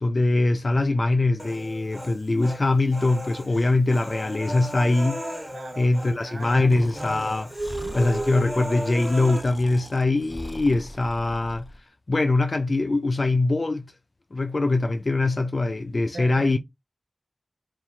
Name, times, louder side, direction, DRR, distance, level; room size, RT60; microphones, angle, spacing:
voice 1, 0.0-5.2 5.8-7.5 7.9-11.7 12.1-13.9 14.3-16.6, left 2 dB, 60° left, 0.4 m, -22 dB
Human voice, 1.4-2.6 2.9-6.2 6.4-6.6 6.9-9.4, right 1 dB, ahead, 1.8 m, -34 dB
voice 2, 5.5-5.9 6.2-7.3 7.7-8.0 16.1-16.6, right 2 dB, 90° right, 0.9 m, -39 dB
Breathing, 6.7-11.8, left 1 dB, 25° left, 0.6 m, -41 dB
4.5 x 2.8 x 2.4 m
wide cardioid pair, 45°, 0 cm